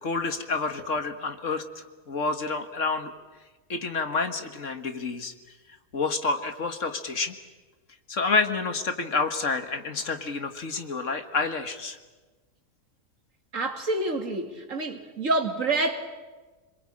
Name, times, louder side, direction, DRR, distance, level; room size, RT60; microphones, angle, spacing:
voice 1, 0.0-3.1 3.7-5.3 5.9-7.3 8.1-12.0, left 4 dB, 60° left, 2.0 m, -29 dB
voice 2, 13.5-16.0, right 2 dB, 65° right, 2.8 m, -27 dB
27.0 x 21.5 x 8.8 m
omnidirectional pair, 1.5 m